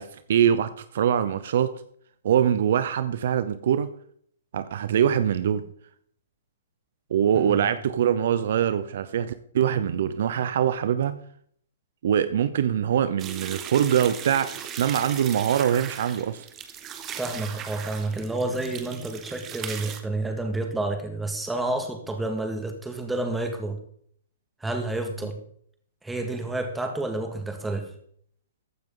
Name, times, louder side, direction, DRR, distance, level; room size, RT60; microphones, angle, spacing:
voice 1, 0.0-1.7 2.2-3.9 4.5-5.7 7.1-11.2 12.0-16.5, right 9 dB, 60° right, 13 dB, 0.8 m, -23 dB
sound 1, 13.2-20.0, right 8 dB, 25° right, 1.3 m, -38 dB
voice 2, 17.2-23.8 24.6-25.4 26.0-27.9, right 2 dB, 5° right, 4 dB, 2.0 m, -29 dB
15.0 x 9.5 x 3.9 m, 0.63 s
hypercardioid pair, 135°, 0 cm